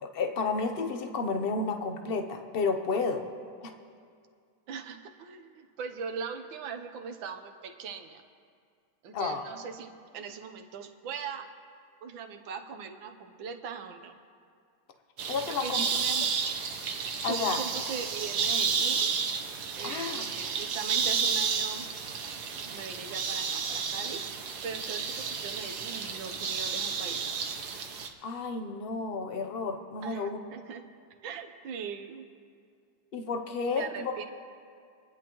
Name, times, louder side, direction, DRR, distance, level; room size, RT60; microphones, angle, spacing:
voice 1, 0.0-3.2 3.6-3.7 9.1-9.4 15.3-15.9 17.2-17.6 19.8-20.3 28.2-30.4 33.1-34.1, left 4 dB, 50° left, 5 dB, 0.7 m, -31 dB
voice 2, 4.7-8.2 9.0-11.5 12.0-14.1 15.5-16.3 17.3-19.1 19.7-21.9 22.6-27.4 30.0-30.8 31.2-32.3 33.7-34.2, right 6 dB, 90° right, 6 dB, 1.7 m, -40 dB
sound 1, 15.2-28.1, right 6 dB, 65° right, 1.4 m, -31 dB
26.0 x 10.5 x 3.0 m, 2.2 s
omnidirectional pair, 2.0 m